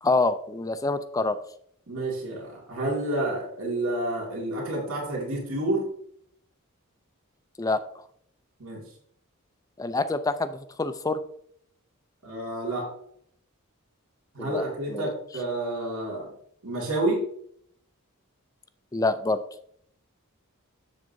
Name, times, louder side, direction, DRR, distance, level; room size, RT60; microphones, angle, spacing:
voice 1, 0.0-1.4 7.6-7.8 9.8-11.2 14.4-14.6 14.9-15.1 18.9-19.4, left 3 dB, 15° left, 11 dB, 0.4 m, -26 dB
voice 2, 1.9-5.9 8.6-8.8 12.2-12.9 14.3-16.3 16.6-17.2, right 1 dB, 70° right, -3 dB, 2.2 m, -29 dB
7.4 x 7.3 x 2.6 m, 0.67 s
head